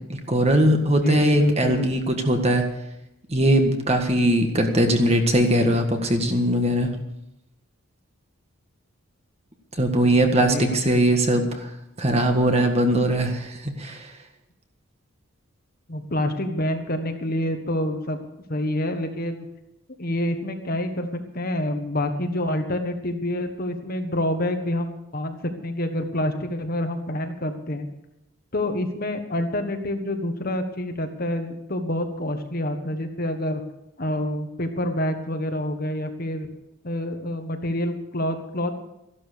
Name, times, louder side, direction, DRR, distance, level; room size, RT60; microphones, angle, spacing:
voice 1, 0.1-2.6 3.3-6.9 9.8-11.7 12.0-14.1, right 1 dB, 30° right, 4 dB, 1.7 m, -20 dB
voice 2, 0.8-1.9 10.2-11.2 15.9-18.2 18.5-19.4 20.0-27.9 28.5-33.6 34.0-36.5 36.8-38.8, left 1 dB, 40° left, 6 dB, 1.4 m, -27 dB
14.0 x 12.0 x 6.8 m, 0.87 s
head